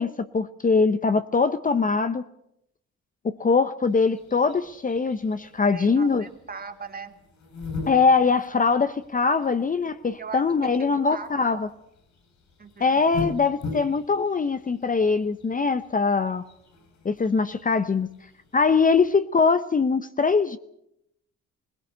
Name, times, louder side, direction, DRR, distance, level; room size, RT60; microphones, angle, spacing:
voice 1, 0.0-2.2 3.2-6.2 7.9-11.7 12.8-16.4 17.0-18.1 18.5-20.6, left 4 dB, 25° left, 11 dB, 0.8 m, -22 dB
sound 1, 3.8-19.2, left 3 dB, 70° left, 7.4 m, -41 dB
voice 2, 5.7-7.2 10.2-10.4 10.8-11.6 12.6-13.0, right 5 dB, 30° right, 5 dB, 2.9 m, -39 dB
21.0 x 18.0 x 8.0 m, 0.78 s
cardioid pair, 90°, 30 cm